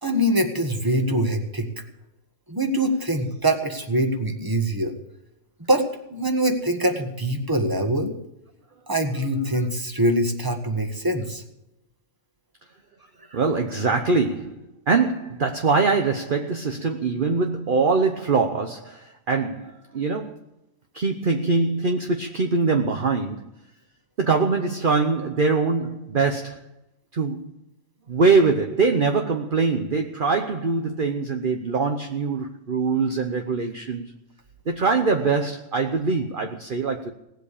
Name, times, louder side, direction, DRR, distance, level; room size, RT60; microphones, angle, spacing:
voice 1, 0.0-1.8 2.5-4.9 5.7-5.8 6.1-8.1 8.9-11.4 13.3-13.4, right 1 dB, 15° right, 5 dB, 1.7 m, -23 dB
voice 2, 13.3-20.3 20.9-23.5 24.2-26.6 27.1-27.5 28.1-34.1 34.7-37.1, right 4 dB, 45° right, 5 dB, 1.1 m, -23 dB
18.0 x 8.1 x 8.5 m, 0.88 s
omnidirectional pair, 1.3 m